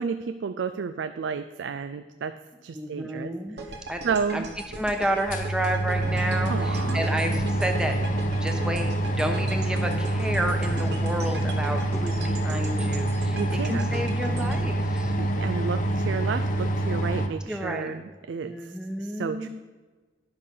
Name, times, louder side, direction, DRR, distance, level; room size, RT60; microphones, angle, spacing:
voice 1, 0.0-2.4 2.6-3.3 3.6-4.5 6.5-7.0 13.3-13.8 15.2-18.5 19.0-19.5, right 5 dB, 75° right, 10 dB, 0.4 m, -31 dB
voice 2, 2.7-3.6 3.9-4.0 4.3-4.4 4.7-7.9 8.4-15.1 17.2-18.0 18.4-19.5, right 1 dB, 5° right, 4 dB, 0.9 m, -31 dB
sound 1, 3.6-15.8, right 3 dB, 60° right, 1.2 m, -40 dB
sound 2, 4.8-4.9 5.1-17.3, right 1 dB, 45° left, 0.8 m, -26 dB
10.5 x 6.7 x 5.5 m, 1.3 s
head